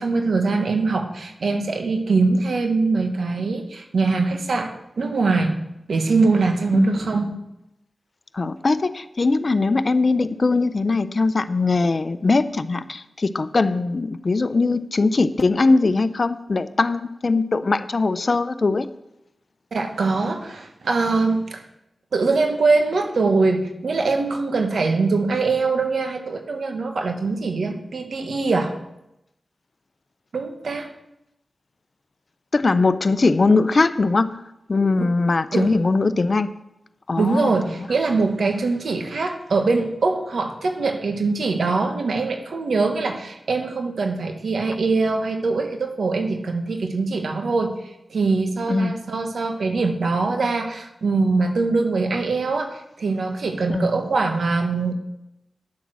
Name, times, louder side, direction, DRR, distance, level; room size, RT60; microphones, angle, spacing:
voice 1, 0.0-5.6 5.9-7.3 19.7-21.6 22.1-28.7 30.3-30.9 35.5-35.7 37.2-47.7 48.1-54.9, right 3 dB, 75° right, 5 dB, 1.5 m, -22 dB
voice 2, 6.7-7.0 8.3-18.9 32.5-34.4 34.7-36.5 37.1-37.9 48.7-49.0 53.7-53.9, left 3 dB, 55° left, 13 dB, 0.7 m, -21 dB
10.5 x 7.8 x 6.3 m, 0.88 s
cardioid pair, 45°, 0 cm